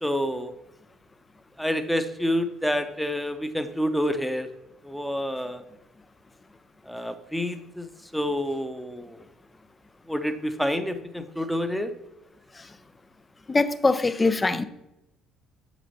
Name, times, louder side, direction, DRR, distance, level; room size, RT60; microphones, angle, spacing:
voice 1, 0.0-0.5 1.6-4.5 4.8-5.6 6.9-9.3 10.1-11.9, equal, ahead, 9 dB, 0.9 m, -28 dB
voice 2, 13.5-14.6, left 3 dB, 25° left, 13 dB, 0.6 m, -22 dB
6.8 x 6.0 x 4.1 m, 0.91 s
hypercardioid pair, 55°, 0 cm